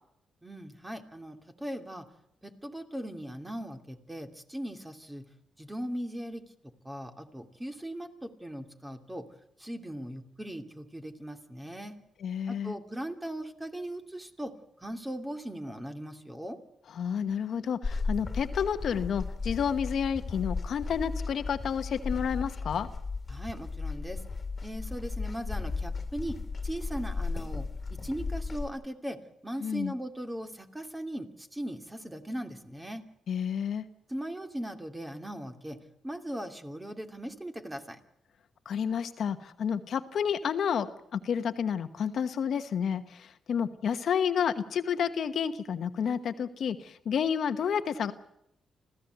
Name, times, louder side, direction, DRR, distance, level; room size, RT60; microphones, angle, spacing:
voice 1, 0.4-2.1 2.4-5.3 5.6-9.3 9.6-12.0 12.5-16.6 23.3-24.2 24.6-26.4 26.6-33.0 34.1-35.8 36.0-38.0, equal, 15° right, 6 dB, 2.6 m, -39 dB
voice 2, 12.2-12.7 17.0-22.9 29.6-29.9 33.3-33.8 38.6-40.9 41.1-48.1, left 7 dB, 70° left, 10 dB, 1.2 m, -30 dB
sound 1, 17.8-28.7, left 4 dB, 35° left, 2.3 m, -35 dB
25.5 x 15.5 x 8.0 m, 0.78 s
cardioid pair, 70°, 0 cm